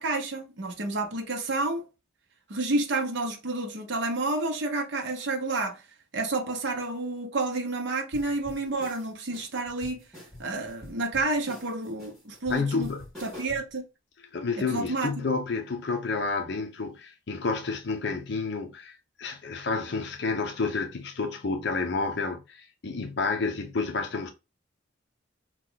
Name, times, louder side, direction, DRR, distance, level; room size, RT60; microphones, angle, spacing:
voice 1, 0.0-1.9 2.5-5.8 6.1-10.1 10.4-12.9 13.2-13.8 14.6-15.1, right 2 dB, 60° right, 0.7 m, -30 dB
sound 1, 8.1-13.7, left 1 dB, ahead, 1.9 m, -46 dB
voice 2, 12.5-13.1 14.3-24.3, left 4 dB, 55° left, 0.6 m, -30 dB
3.0 x 2.3 x 3.7 m
head